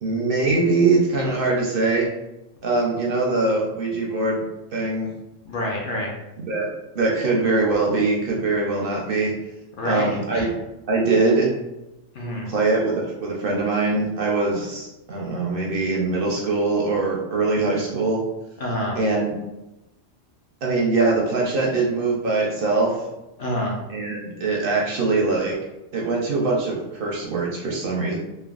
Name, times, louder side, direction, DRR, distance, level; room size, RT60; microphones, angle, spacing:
voice 1, 0.0-2.1 2.6-4.4 4.7-5.1 6.4-6.7 6.9-9.3 9.8-10.5 10.9-11.5 12.5-18.2 19.0-19.4 20.6-23.0 23.9-25.6 25.9-28.2, right 3 dB, 60° right, -2 dB, 0.6 m, -22 dB
voice 2, 5.4-6.1 9.8-10.5 12.1-12.5 18.6-19.0 23.4-23.8, left 1 dB, 55° left, -2 dB, 0.6 m, -27 dB
3.3 x 2.0 x 2.3 m, 0.95 s
omnidirectional pair, 1.3 m